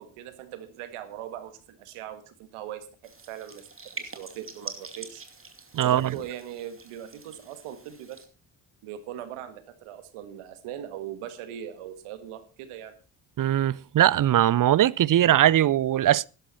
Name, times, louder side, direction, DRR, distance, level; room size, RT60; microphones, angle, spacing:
voice 1, 0.0-3.7 4.0-5.2 5.8-8.3 8.8-13.0, right 10 dB, 85° right, 1.8 m, -40 dB
sound 1, 3.0-8.2, right 3 dB, 25° right, 2.5 m, -44 dB
voice 2, 5.7-6.1 13.4-16.3, right 12 dB, 40° right, 0.5 m, -21 dB
13.0 x 11.0 x 4.2 m
supercardioid pair, 55°, 49 cm